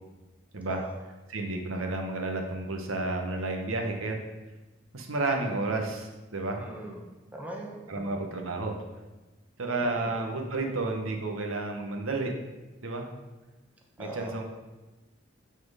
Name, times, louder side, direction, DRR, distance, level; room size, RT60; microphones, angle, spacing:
voice 1, 1.3-4.2 4.9-6.6 7.9-8.8 9.6-12.3 12.8-13.1 14.0-14.4, right 2 dB, 90° right, 3 dB, 1.0 m, -31 dB
voice 2, 6.6-7.0 7.3-8.1 9.8-10.1 14.0-14.4, right 1 dB, 5° right, -2 dB, 0.9 m, -40 dB
7.4 x 4.3 x 4.9 m, 1.1 s
head